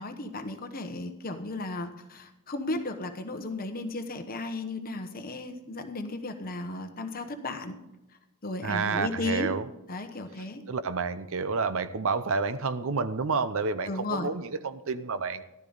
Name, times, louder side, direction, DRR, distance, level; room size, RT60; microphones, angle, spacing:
voice 1, 0.0-7.8 8.4-9.6 9.9-10.6 13.9-14.3, left 2 dB, 40° left, 7 dB, 1.0 m, -35 dB
voice 2, 8.6-9.7 10.7-15.4, right 4 dB, 65° right, 12 dB, 0.7 m, -29 dB
14.0 x 12.0 x 4.0 m, 0.95 s
head